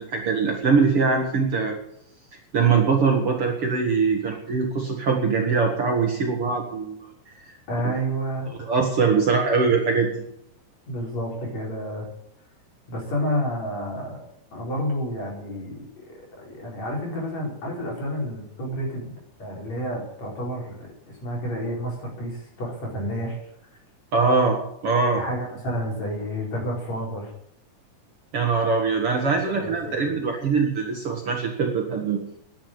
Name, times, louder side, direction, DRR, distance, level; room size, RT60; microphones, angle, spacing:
voice 1, 0.0-1.8 2.5-7.0 7.8-7.9 8.6-10.2 24.1-24.6 24.8-25.2 28.3-32.2, right 5 dB, 45° right, 1 dB, 2.4 m, -22 dB
voice 2, 7.7-8.5 10.9-12.1 12.9-14.3 14.5-23.4 25.1-27.3 29.3-30.0, equal, 50° left, -2 dB, 5.9 m, -30 dB
11.5 x 10.0 x 9.1 m, 0.71 s
omnidirectional pair, 3.9 m